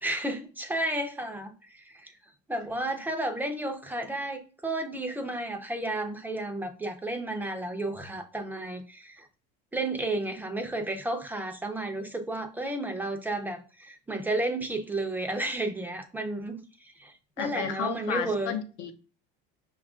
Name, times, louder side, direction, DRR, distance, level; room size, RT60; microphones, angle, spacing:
voice 1, 0.0-2.1 2.5-9.3 9.7-18.6, right 2 dB, 10° right, 0.5 m, -32 dB
voice 2, 17.4-18.9, left 7 dB, 60° left, 0.7 m, -32 dB
5.5 x 2.4 x 3.6 m
cardioid pair, 145°, 21 cm